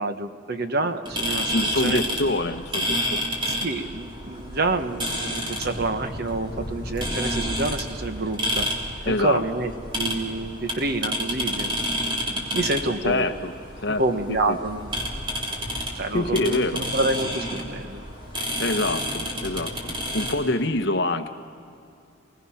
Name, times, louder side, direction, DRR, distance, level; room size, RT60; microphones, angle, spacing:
voice 1, 0.0-2.0 3.5-8.7 9.0-9.7 10.0-11.8 12.5-13.4 14.0-14.9 15.9-18.0, right 2 dB, 50° right, 8 dB, 1.1 m, -27 dB
sound 1, 1.1-20.3, equal, 25° right, 3.2 m, -30 dB
voice 2, 1.5-3.2 9.0-9.4 13.0-13.5 13.8-14.0 14.3-14.6 16.1-16.8 18.6-21.3, left 2 dB, 55° left, 7 dB, 1.1 m, -25 dB
29.5 x 19.5 x 5.8 m, 2.5 s
head